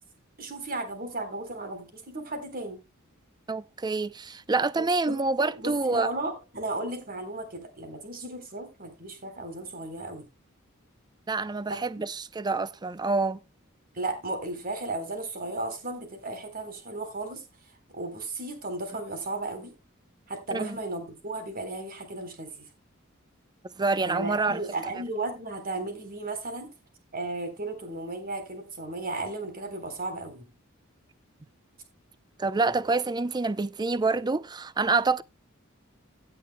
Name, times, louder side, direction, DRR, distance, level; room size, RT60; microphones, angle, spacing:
voice 1, 0.4-2.8 4.8-10.3 11.7-11.8 13.9-17.4 17.9-19.7 20.3-22.7 24.0-26.7 27.1-30.5, right 2 dB, 45° right, 3.7 m, -35 dB
voice 2, 3.5-6.1 11.3-13.4 20.5-20.8 23.8-24.6 24.9-25.0 32.4-35.2, right 3 dB, 20° right, 0.5 m, -27 dB
17.0 x 8.6 x 2.2 m
head